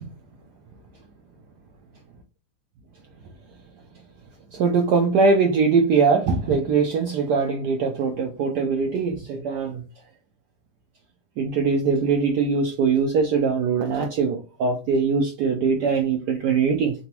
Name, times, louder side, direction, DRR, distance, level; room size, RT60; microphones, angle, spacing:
voice 1, 4.5-9.8 11.4-16.9, right 5 dB, 80° right, 3 dB, 0.9 m, -21 dB
3.9 x 2.3 x 2.8 m, 0.33 s
omnidirectional pair, 2.3 m